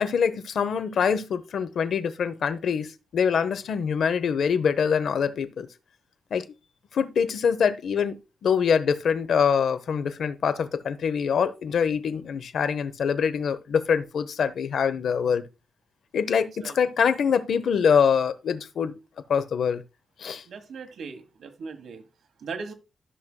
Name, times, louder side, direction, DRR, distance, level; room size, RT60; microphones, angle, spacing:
voice 1, 0.0-5.7 6.3-6.4 6.9-15.4 16.1-18.9 19.3-19.8 20.2-20.4, left 7 dB, 75° left, 0.7 m, -24 dB
voice 2, 20.5-22.0 22.4-22.7, right 5 dB, 85° right, 1.4 m, -38 dB
13.5 x 6.1 x 2.2 m
wide cardioid pair, 165°, 0 cm